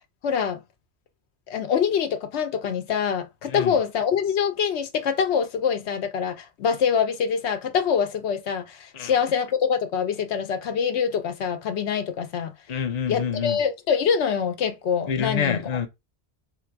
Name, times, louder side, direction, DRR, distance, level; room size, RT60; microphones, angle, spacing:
voice 1, 0.2-0.6 1.5-12.5 13.1-15.8, left 7 dB, 85° left, 1.0 m, -25 dB
voice 2, 12.7-13.6 15.1-15.9, left 7 dB, 45° left, 0.7 m, -27 dB
3.7 x 2.5 x 4.4 m
omnidirectional pair, 1.1 m